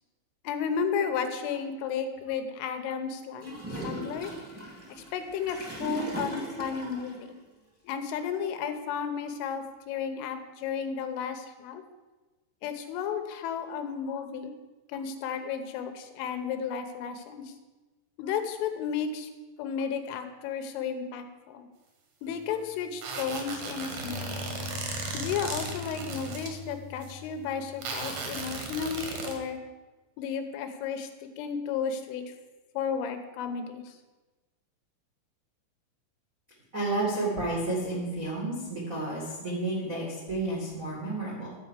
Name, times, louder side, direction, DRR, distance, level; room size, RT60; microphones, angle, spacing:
voice 1, 0.4-4.3 5.0-7.4 7.8-11.8 12.6-14.5 14.9-17.5 18.2-19.3 19.6-21.7 22.2-24.3 25.1-29.6 30.2-32.3 32.7-34.0, left 7 dB, 85° left, 7 dB, 3.5 m, -33 dB
Gurgling / Toilet flush, 3.4-7.1, right 2 dB, 15° right, 0.5 m, -38 dB
sound 1, 22.2-23.5 24.0-29.2, left 5 dB, 55° left, 1.0 m, -43 dB
sound 2, 23.0-26.5 27.0-27.1 27.8-29.3, right 4 dB, 70° right, 1.7 m, -36 dB
voice 2, 36.7-41.6, right 2 dB, 90° right, -4 dB, 0.7 m, -31 dB
12.0 x 4.7 x 8.1 m, 1.2 s
omnidirectional pair, 5.6 m